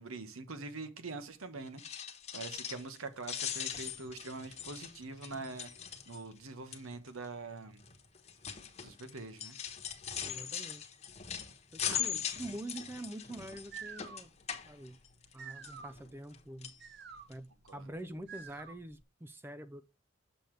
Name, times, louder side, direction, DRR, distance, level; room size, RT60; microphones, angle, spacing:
voice 1, 0.0-2.0 2.3-7.8 8.8-9.6 11.9-12.0 17.6-17.9, right 3 dB, 80° right, 1.2 m, -44 dB
sound 1, 1.7-3.0 3.2-6.4 6.7-7.1 7.8-15.3 15.6-16.4 16.6-16.8 17.3-17.4 17.7-17.8, left 9 dB, 30° left, 1.1 m, -40 dB
voice 2, 10.2-10.8 11.7-14.3 14.7-15.0 15.3-16.8 17.3-19.8, right 1 dB, 10° right, 0.3 m, -45 dB
sound 2, 13.6-19.0, right 6 dB, 50° right, 0.9 m, -51 dB
7.6 x 6.8 x 3.2 m
head